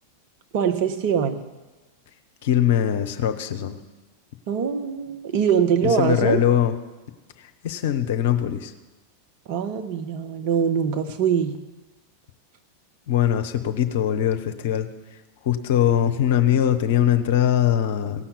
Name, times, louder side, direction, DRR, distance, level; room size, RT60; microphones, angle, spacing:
voice 1, 0.5-1.4 4.5-6.4 9.5-11.6, right 7 dB, 45° right, 6 dB, 1.0 m, -23 dB
voice 2, 2.4-3.8 5.8-6.8 7.4-8.7 13.1-14.9 15.4-18.3, left 10 dB, 55° left, 8 dB, 0.9 m, -21 dB
16.5 x 5.8 x 8.2 m, 1.2 s
figure-of-eight pair, 90°, 0 cm